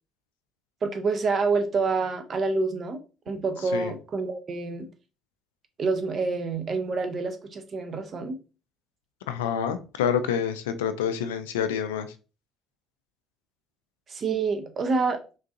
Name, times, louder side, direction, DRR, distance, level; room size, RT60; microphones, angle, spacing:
voice 1, 0.8-3.0 3.3-4.9 5.8-8.4 14.1-15.2, right 4 dB, 45° right, 6 dB, 0.7 m, -27 dB
voice 2, 9.3-12.1, left 8 dB, 85° left, 10 dB, 0.3 m, -27 dB
3.7 x 2.4 x 2.6 m, 0.33 s
hypercardioid pair, 55°, 0 cm